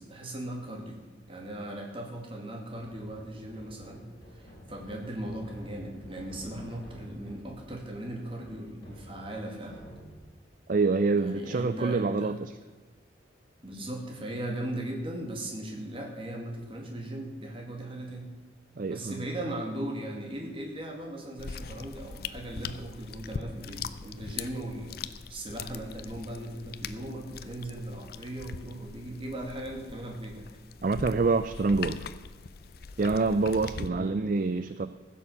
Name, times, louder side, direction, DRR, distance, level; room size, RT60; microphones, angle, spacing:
voice 1, 0.0-4.0 4.3-9.8 11.1-12.4 13.6-18.3 18.9-30.5 33.9-34.2, right 1 dB, 30° right, 1 dB, 2.3 m, -38 dB
sound 1, 2.8-10.5, equal, 25° left, 3.2 m, -49 dB
voice 2, 10.7-12.5 18.8-19.3 30.8-32.0 33.0-34.9, right 3 dB, 45° right, 12 dB, 0.4 m, -26 dB
sound 2, 21.4-33.9, left 5 dB, 55° left, 0.5 m, -41 dB
15.0 x 7.1 x 7.1 m, 1.3 s
head